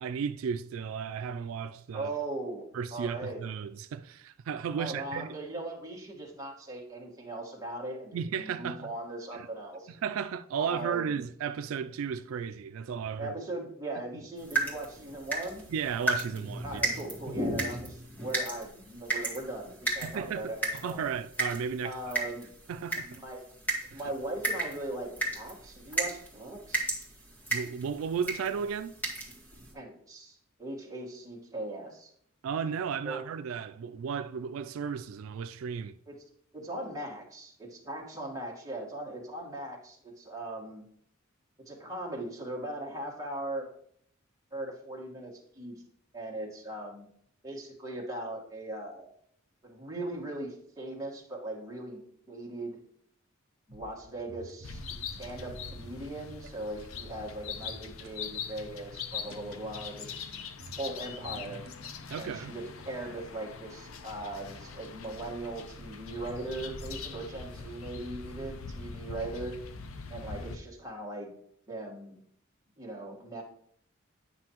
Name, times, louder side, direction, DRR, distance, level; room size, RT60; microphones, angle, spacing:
voice 1, 0.0-2.1 2.7-5.3 8.1-8.9 9.3-9.5 9.9-13.3 15.7-16.8 17.3-17.4 20.0-22.0 22.7-23.2 23.9-24.1 27.5-28.9 32.4-36.0 62.1-62.5, right 7 dB, 85° right, 0.3 m, -34 dB
voice 2, 1.9-3.4 4.8-9.9 10.6-11.1 13.2-15.6 16.6-21.0 21.8-22.5 23.0-23.4 23.9-26.9 29.7-32.1 33.0-33.2 36.1-36.2 36.5-40.8 41.7-43.7 44.5-45.8 46.1-47.1 47.4-49.1 49.6-52.8 53.7-54.8 55.2-60.1 60.8-61.6 62.2-69.5 70.1-71.3 71.7-72.1 72.8-73.4, right 2 dB, 15° right, 1.5 m, -39 dB
sound 1, 14.4-29.7, right 2 dB, 10° left, 1.7 m, -35 dB
sound 2, 53.7-56.6 57.6-58.2 59.3-59.8 60.5-61.9 63.3-65.3 65.6-65.7, right 3 dB, 50° right, 0.7 m, -52 dB
sound 3, 54.6-70.6, left 5 dB, 90° left, 0.6 m, -42 dB
9.7 x 5.9 x 3.0 m
head